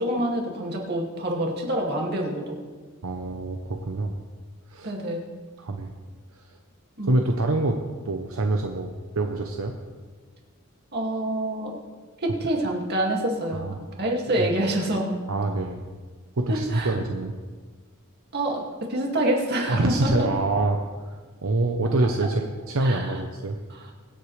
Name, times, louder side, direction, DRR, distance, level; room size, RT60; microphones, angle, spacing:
voice 1, 0.0-2.6 4.8-5.3 7.0-7.1 10.9-11.8 12.2-15.2 16.5-16.9 18.3-20.1 22.8-23.2 23.7-23.9, right 1 dB, 50° right, 0 dB, 2.3 m, -27 dB
voice 2, 3.0-4.1 4.7-4.9 5.6-5.9 7.0-7.8 8.0-9.7 13.5-13.7 14.4-14.5 15.3-15.8 16.4-17.3 19.7-20.8 21.1-21.2 21.4-23.6, right 2 dB, 80° right, 3 dB, 0.8 m, -25 dB
24.0 x 8.1 x 3.3 m, 1.4 s
head